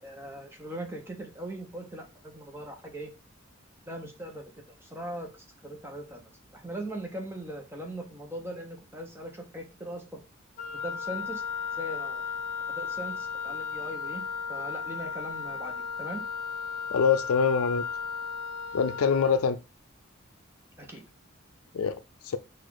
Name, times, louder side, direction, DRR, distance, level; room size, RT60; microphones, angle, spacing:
voice 1, 0.0-3.1 3.9-4.5 4.8-5.3 5.6-6.2 6.5-10.2 10.7-11.4 11.8-12.2 12.8-16.3 20.8-21.0, right 1 dB, 10° right, 0.8 m, -40 dB
Wind instrument woodwind instrument, 10.6-19.4, left 6 dB, 40° left, 1.0 m, -35 dB
voice 2, 16.9-17.8 18.7-19.6 21.7-22.0, left 6 dB, 90° left, 0.4 m, -24 dB
4.1 x 2.5 x 4.6 m
head